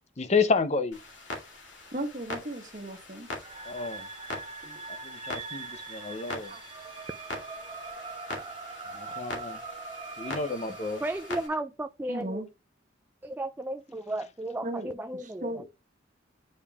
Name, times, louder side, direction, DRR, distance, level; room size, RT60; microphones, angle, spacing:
voice 1, 0.2-1.0 3.6-4.1 4.9-6.5 8.9-9.6 10.2-11.0, left 4 dB, 35° left, 0.6 m, -30 dB
Clock, 0.9-11.5, left 2 dB, 80° left, 2.2 m, -42 dB
voice 2, 1.9-3.3 4.6-4.8 6.5-6.6 12.1-12.5 14.6-15.6, right 1 dB, 40° right, 1.3 m, -36 dB
sound 1, 3.4-11.5, right 4 dB, 25° right, 0.9 m, -42 dB
voice 3, 11.0-12.4 13.2-15.6, right 1 dB, 10° right, 0.3 m, -34 dB
8.6 x 5.2 x 2.3 m
head